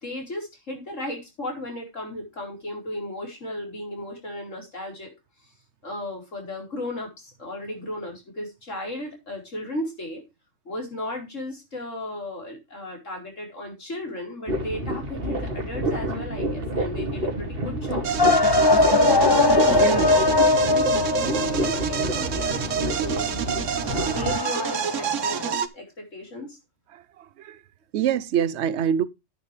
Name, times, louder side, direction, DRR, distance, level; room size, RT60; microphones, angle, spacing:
voice 1, 0.0-5.1 5.8-10.2 10.6-18.1 18.4-20.3 20.7-23.5 24.1-26.6, left 1 dB, 85° left, 4.8 m, -35 dB
sound 1, 14.5-24.3, right 1 dB, 50° right, 1.9 m, -29 dB
sound 2, 18.0-25.7, right 9 dB, 85° right, 1.3 m, -28 dB
sound 3, 18.2-25.6, left 3 dB, 20° left, 0.9 m, -21 dB
voice 2, 19.7-20.2 26.9-27.6 27.9-29.0, right 9 dB, 65° right, 1.0 m, -26 dB
10.0 x 9.7 x 3.3 m
omnidirectional pair, 1.3 m